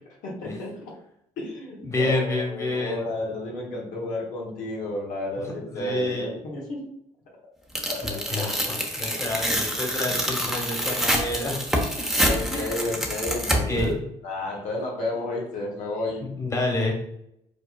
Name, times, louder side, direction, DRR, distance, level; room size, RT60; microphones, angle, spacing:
voice 1, 0.2-0.9 1.4-6.8 7.9-8.6 12.2-13.9 14.2-16.2, left 1 dB, 70° left, -2 dB, 1.4 m, -32 dB
voice 2, 1.8-3.1 5.7-6.4 8.0-11.6 12.2-12.8 13.5-14.0 16.4-16.9, left 2 dB, 20° left, -1 dB, 1.5 m, -29 dB
Tearing, 7.8-13.9, equal, ahead, 1.0 m, -26 dB
5.2 x 4.1 x 2.3 m, 0.76 s
supercardioid pair, 80°, 14 cm